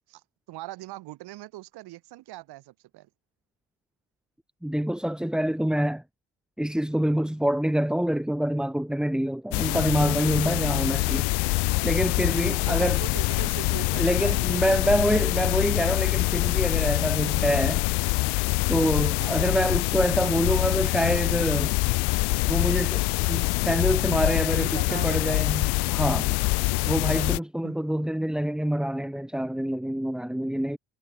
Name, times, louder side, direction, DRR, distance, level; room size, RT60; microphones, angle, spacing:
voice 1, 0.0-3.1 12.3-15.5 19.2-19.5 24.5-25.6 27.6-27.8, right 17 dB, 70° right, 3.4 m, -41 dB
voice 2, 4.6-6.0 6.6-11.3 11.8-13.0 14.0-17.9 18.7-21.8 22.5-26.3 26.9-30.8, equal, ahead, 1.1 m, -26 dB
sound 1, 9.5-27.4, left 29 dB, 75° left, 0.6 m, -25 dB
supercardioid pair, 80°, 40 cm